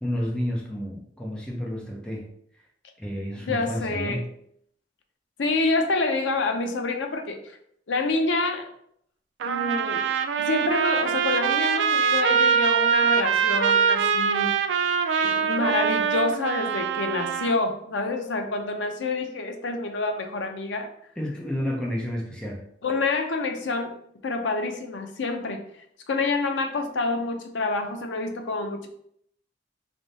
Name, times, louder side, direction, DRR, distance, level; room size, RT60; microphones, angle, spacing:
voice 1, 0.0-2.3 3.0-4.2 21.2-22.6, equal, 5° left, -2 dB, 0.7 m, -30 dB
voice 2, 3.5-4.2 5.4-7.6 7.9-8.7 9.4-10.1 10.4-14.5 15.2-20.9 22.8-24.0 24.2-25.6 26.1-28.9, left 3 dB, 85° left, 5 dB, 0.6 m, -27 dB
Trumpet, 9.4-17.6, right 7 dB, 75° right, 0.3 m, -23 dB
3.5 x 2.6 x 4.0 m, 0.69 s
head